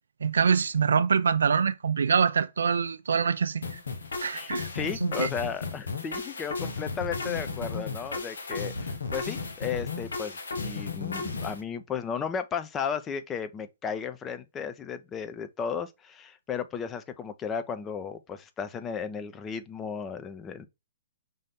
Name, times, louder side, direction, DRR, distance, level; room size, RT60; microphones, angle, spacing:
voice 1, 0.2-3.6 4.2-4.7 5.0-5.3, right 6 dB, 80° right, 0.4 m, -24 dB
sound 1, 3.6-11.6, left 4 dB, 80° left, 1.0 m, -34 dB
voice 2, 4.3-20.7, left 7 dB, 20° left, 0.6 m, -34 dB
5.3 x 2.7 x 3.6 m
hypercardioid pair, 130°, 0 cm